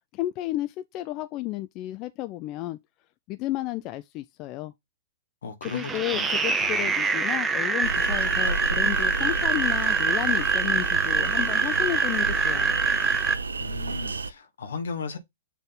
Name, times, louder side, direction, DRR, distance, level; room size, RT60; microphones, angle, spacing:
voice 1, 0.1-2.8 3.3-4.7 5.7-12.8, left 16 dB, 35° left, 0.4 m, -32 dB
voice 2, 5.4-6.9 13.6-15.2, left 4 dB, 70° left, 1.3 m, -36 dB
sound 1, 5.6-13.3, right 4 dB, 15° right, 0.7 m, -25 dB
sound 2, 7.8-14.3, right 3 dB, 80° right, 0.5 m, -31 dB
7.1 x 3.7 x 3.8 m
figure-of-eight pair, 110°, 0 cm